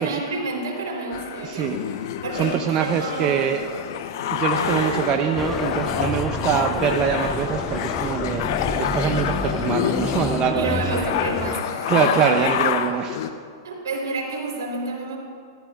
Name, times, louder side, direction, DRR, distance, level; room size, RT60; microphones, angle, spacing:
voice 1, 0.0-1.7 2.2-3.4 4.2-4.3 10.4-12.4 13.6-15.2, right 3 dB, 70° right, 0 dB, 4.1 m, -30 dB
sound 1, 1.1-13.3, left 9 dB, 55° left, 0.8 m, -27 dB
voice 2, 1.4-1.8 2.3-3.6 4.3-11.1 11.9-13.2, right 8 dB, 35° right, 6 dB, 0.6 m, -24 dB
sound 2, 3.0-9.9 12.3-12.8, left 2 dB, 90° left, 4.3 m, -37 dB
sound 3, 5.4-11.6, left 3 dB, 15° left, 0.7 m, -29 dB
28.0 x 14.0 x 2.5 m, 2.3 s
hypercardioid pair, 105°, 2 cm